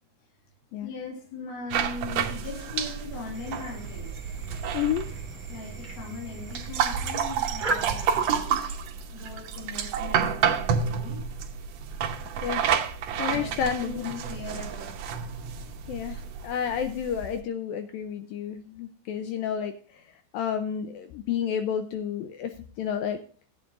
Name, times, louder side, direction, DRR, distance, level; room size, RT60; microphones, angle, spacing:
voice 1, 0.8-4.1 5.5-8.7 9.1-11.2 13.3-15.3, left 4 dB, 55° left, 1 dB, 3.9 m, -40 dB
sound 1, 1.7-17.4, right 7 dB, 90° right, 1.4 m, -30 dB
sound 2, 3.3-8.4, right 3 dB, 20° right, 1.2 m, -37 dB
voice 2, 4.7-5.1 12.4-12.7 13.2-14.1 15.9-19.7 20.3-22.5 22.8-23.2, left 8 dB, 80° left, 8 dB, 2.2 m, -30 dB
15.5 x 9.2 x 2.5 m, 0.42 s
omnidirectional pair, 4.6 m